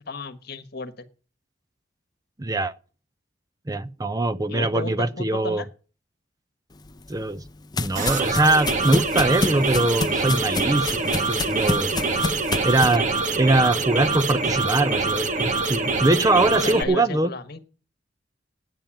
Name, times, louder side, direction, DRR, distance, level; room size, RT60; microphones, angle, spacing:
voice 1, 0.1-1.0 4.5-5.6 16.6-17.6, left 3 dB, 60° left, 1.3 m, -33 dB
voice 2, 2.4-2.7 3.7-5.6 7.1-7.4 7.8-12.0 12.6-13.1 13.4-17.3, right 2 dB, 20° right, 0.5 m, -22 dB
sound 1, 6.8-13.0, left 3 dB, 20° left, 0.6 m, -29 dB
sound 2, 8.0-16.8, right 3 dB, 45° right, 1.3 m, -25 dB
9.2 x 8.8 x 8.9 m
head